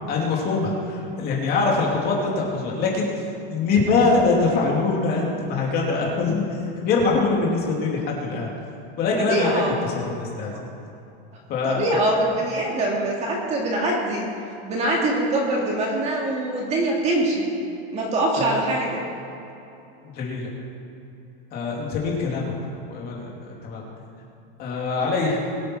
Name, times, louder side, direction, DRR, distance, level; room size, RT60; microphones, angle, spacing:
voice 1, 0.1-3.1 3.5-6.4 6.8-8.5 9.0-9.6 10.2-10.5 11.5-12.2 18.4-18.6 20.2-20.5 21.5-22.5 22.9-23.3 23.6-23.8 24.6-25.4, left 3 dB, 30° left, -2 dB, 2.7 m, -23 dB
voice 2, 9.2-9.7 11.6-14.3 14.7-17.5 17.9-19.0, right 1 dB, 20° right, -2 dB, 2.0 m, -23 dB
22.0 x 9.2 x 4.6 m, 2.8 s
supercardioid pair, 175°, 29 cm